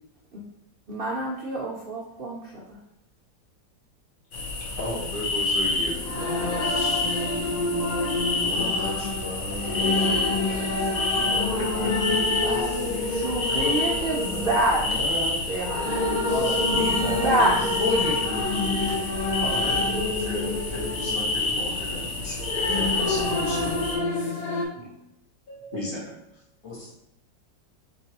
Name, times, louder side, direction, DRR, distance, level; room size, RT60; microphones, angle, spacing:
voice 1, 0.9-2.8 12.3-15.1 15.5-16.1 16.7-17.6, right 1 dB, 70° right, -3 dB, 0.5 m, -27 dB
sound 1, 4.3-24.0, left 3 dB, 55° left, 1.0 m, -29 dB
voice 2, 4.8-7.0 11.6-12.1 18.3-18.5 19.4-23.8 24.7-25.0 25.5-26.4, left 1 dB, 35° left, -3 dB, 1.2 m, -36 dB
sound 2, 5.6-24.6, left 2 dB, 70° left, 0.4 m, -28 dB
voice 3, 8.4-12.0 12.5-13.0 13.5-15.4 16.2-17.4 17.8-18.6 26.6-26.9, left 2 dB, 90° left, -7 dB, 2.5 m, -33 dB
4.5 x 3.9 x 2.9 m, 0.80 s
omnidirectional pair, 2.0 m